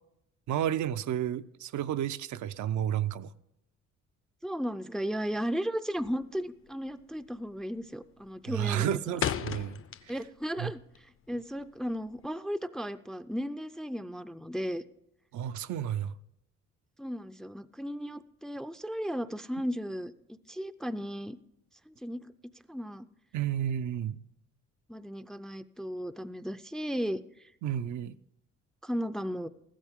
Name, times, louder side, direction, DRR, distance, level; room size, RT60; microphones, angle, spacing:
voice 1, 0.5-3.3 8.5-9.8 10.6-10.7 15.3-16.1 23.3-24.2 27.6-28.1, right 10 dB, 75° right, 0.5 m, -31 dB
voice 2, 4.4-9.0 10.1-14.8 17.0-21.4 21.9-22.3 22.7-23.1 24.9-27.2 28.8-29.5, equal, ahead, 0.4 m, -35 dB
sound 1, 6.0-6.4 6.7-7.0 7.4-7.8 8.1-10.5 10.8-12.2, left 9 dB, 45° left, 0.6 m, -35 dB
14.5 x 12.5 x 3.6 m
cardioid pair, 90°, 30 cm